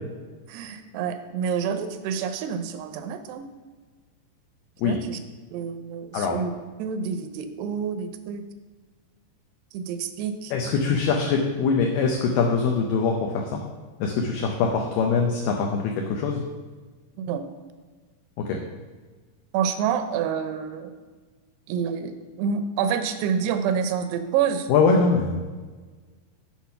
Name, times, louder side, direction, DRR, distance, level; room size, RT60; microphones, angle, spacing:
voice 1, 0.5-3.5 4.8-5.2 5.5-6.5 6.8-8.4 9.7-10.5 17.2-17.4 19.5-21.0 21.7-24.7, right 7 dB, 85° right, 8 dB, 2.6 m, -28 dB
voice 2, 10.5-13.6 14.0-16.4 24.7-25.4, left 5 dB, 90° left, 1 dB, 1.9 m, -23 dB
8.3 x 4.3 x 5.6 m, 1.4 s
omnidirectional pair, 4.8 m